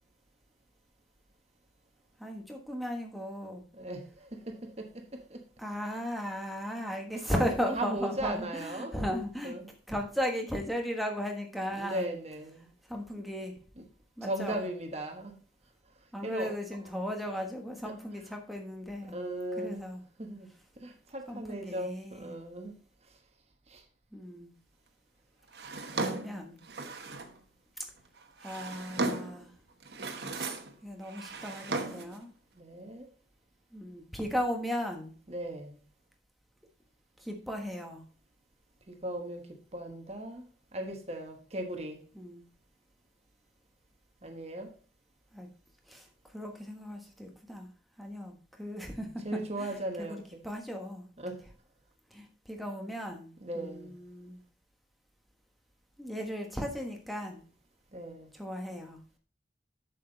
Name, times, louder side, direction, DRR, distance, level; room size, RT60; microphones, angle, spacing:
voice 1, 2.2-3.6 5.6-9.5 9.9-12.1 12.9-13.6 14.2-14.6 16.1-19.2 19.6-20.0 21.3-22.4 24.1-24.5 26.0-26.6 28.4-29.5 30.3-30.5 30.8-32.3 33.7-35.1 37.2-38.0 42.1-42.5 45.3-45.5 45.9-47.7 48.0-49.7 50.0-51.1 52.1-54.4 56.0-57.4 58.3-59.0, equal, ahead, 1.3 m, -36 dB
voice 2, 3.7-5.4 7.2-9.0 9.4-9.7 11.7-12.7 13.7-13.9 14.2-15.3 16.2-16.9 17.8-18.3 19.0-19.8 20.2-20.5 20.8-22.7 23.7-23.8 32.5-33.1 35.3-35.8 38.9-40.4 40.7-42.0 44.2-44.7 49.2-50.4 51.2-51.4 53.4-54.0 57.9-58.3, right 1 dB, 35° right, 1.3 m, -38 dB
Drawer open or close, 25.5-27.4 28.2-29.4 29.8-30.7 31.0-32.2, right 3 dB, 65° right, 1.1 m, -36 dB
7.5 x 7.1 x 4.0 m
head